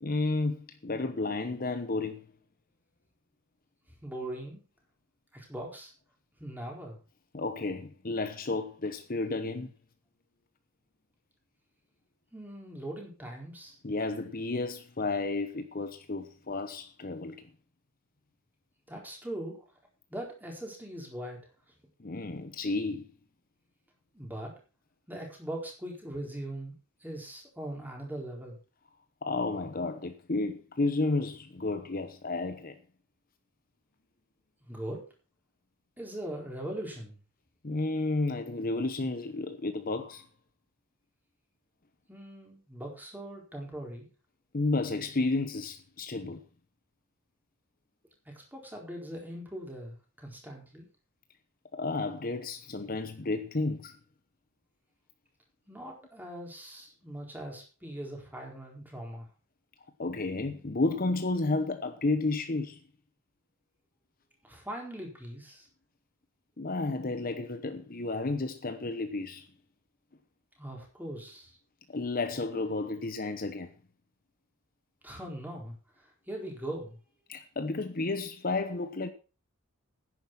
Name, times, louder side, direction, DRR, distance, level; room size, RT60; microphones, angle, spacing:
voice 1, 0.0-2.2 7.3-9.7 13.8-17.4 22.0-23.1 29.2-32.8 37.6-40.2 44.5-46.4 51.7-54.0 60.0-62.8 66.6-69.5 71.9-73.7 77.3-79.1, left 3 dB, 40° left, 0.9 m, -32 dB
voice 2, 4.0-4.6 5.3-5.9 6.4-7.0 12.3-13.8 18.9-19.6 20.1-21.4 24.1-24.5 25.1-28.6 34.7-35.0 36.0-37.2 42.1-44.1 48.3-50.9 55.7-59.3 64.4-65.7 70.6-71.6 75.0-77.0, right 1 dB, 10° right, 4.3 m, -41 dB
10.5 x 10.0 x 5.9 m
head